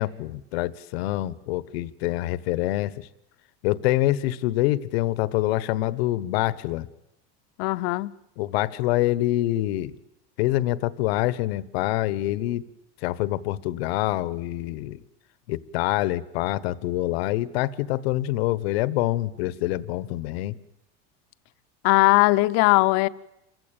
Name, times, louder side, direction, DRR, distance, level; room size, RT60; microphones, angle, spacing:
voice 1, 0.0-3.1 3.6-6.9 8.4-9.9 10.4-12.6 13.0-15.0 15.5-20.5, left 15 dB, 80° left, 1.3 m, -26 dB
voice 2, 7.6-8.1 21.8-23.1, left 21 dB, 50° left, 0.9 m, -19 dB
28.5 x 16.0 x 8.9 m
cardioid pair, 165°, 30 cm